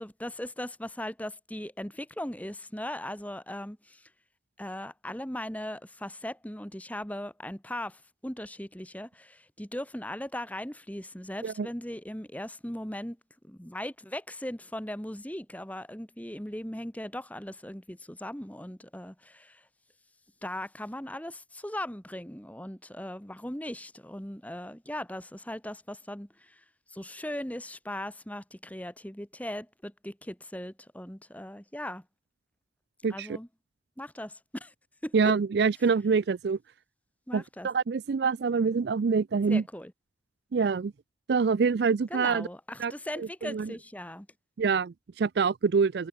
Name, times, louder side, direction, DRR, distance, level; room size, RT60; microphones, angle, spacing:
voice 1, 0.0-4.1 4.6-13.2 13.4-19.7 20.4-26.6 26.9-32.0 33.1-33.5 34.0-34.7 35.0-35.1 37.3-37.7 39.5-39.9 42.1-44.3, left 1 dB, 10° left, 2.1 m, -38 dB
voice 2, 35.1-36.6 37.3-39.6 40.5-40.9 41.3-42.5 42.8-42.9 43.2-43.7 44.6-46.1, right 5 dB, 60° right, 0.4 m, -26 dB
head